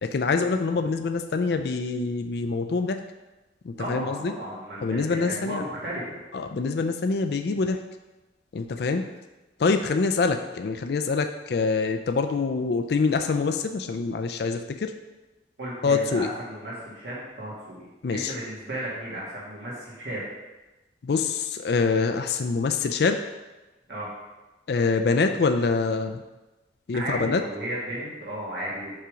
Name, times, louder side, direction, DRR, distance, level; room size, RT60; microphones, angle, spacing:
voice 1, 0.0-3.0 3.6-4.3 4.8-5.6 6.3-7.8 8.5-9.0 9.6-14.9 15.8-16.3 18.0-18.3 21.0-23.2 24.7-26.2 26.9-27.4, left 4 dB, 60° left, 7 dB, 0.4 m, -25 dB
voice 2, 3.8-6.2 15.6-20.2 23.9-24.1 26.9-28.9, right 1 dB, 70° right, -7 dB, 2.0 m, -34 dB
5.5 x 4.9 x 5.1 m, 1.1 s
head